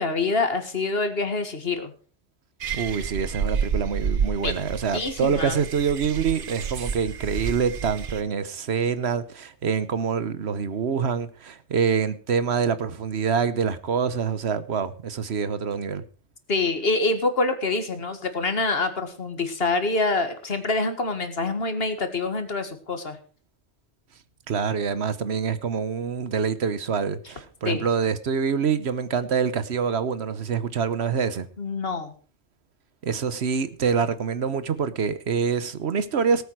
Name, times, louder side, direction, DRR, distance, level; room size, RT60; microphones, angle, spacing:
voice 1, 0.0-1.9 4.4-4.5 4.9-5.6 16.5-23.2 27.7-27.9 31.6-32.1, left 3 dB, 60° left, 2.0 m, -26 dB
sound 1, 2.6-8.2, right 6 dB, 55° right, 1.0 m, -30 dB
voice 2, 2.7-16.0 24.5-31.5 33.0-36.4, right 6 dB, 75° right, 1.2 m, -26 dB
18.5 x 8.3 x 4.7 m
omnidirectional pair, 1.1 m